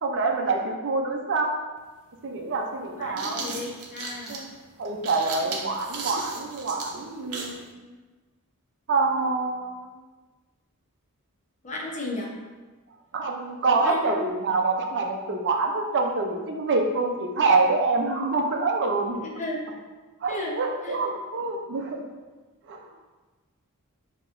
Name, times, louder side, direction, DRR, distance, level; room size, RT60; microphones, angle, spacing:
voice 1, 0.0-1.6 2.2-3.4 4.3-4.5 4.8-7.8 8.9-9.9 13.1-19.2 20.2-22.0 22.7-22.8, right 3 dB, 55° right, 2 dB, 0.5 m, -26 dB
sound 1, 1.8-1.9 2.8-7.6, right 4 dB, 90° right, 0.7 m, -36 dB
voice 2, 3.0-4.4 11.6-12.3 13.8-14.2 19.3-19.6 20.3-20.5 20.8-21.0, left 2 dB, 35° left, -3 dB, 0.9 m, -34 dB
6.6 x 2.9 x 2.5 m, 1.3 s
head